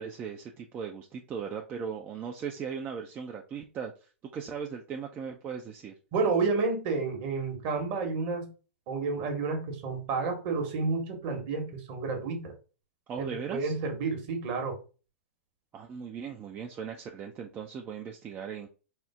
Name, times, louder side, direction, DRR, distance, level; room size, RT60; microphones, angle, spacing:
voice 1, 0.0-5.9 13.1-13.8 15.7-18.7, right 6 dB, 25° right, 2 dB, 0.5 m, -38 dB
voice 2, 6.1-8.5 8.9-12.5 13.2-14.8, right 4 dB, 50° right, 4 dB, 1.3 m, -30 dB
4.3 x 2.0 x 3.4 m, 0.34 s
hypercardioid pair, 110°, 7 cm